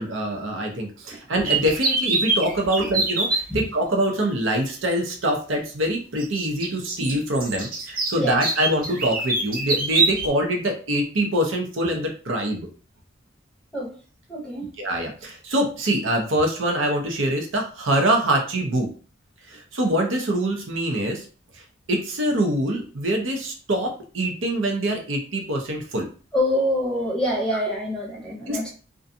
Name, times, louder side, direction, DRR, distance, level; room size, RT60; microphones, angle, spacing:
voice 1, 0.0-12.7 14.8-18.9 19.5-21.2 21.5-21.6 21.9-26.1 28.5-28.7, right 1 dB, 85° right, 0.7 m, -24 dB
sound 1, 1.4-3.4 4.9-5.0 6.2-10.3, right 3 dB, 45° right, 0.6 m, -24 dB
voice 2, 14.3-14.7 26.3-28.7, left 1 dB, 5° left, 0.7 m, -26 dB
2.5 x 2.3 x 2.6 m
head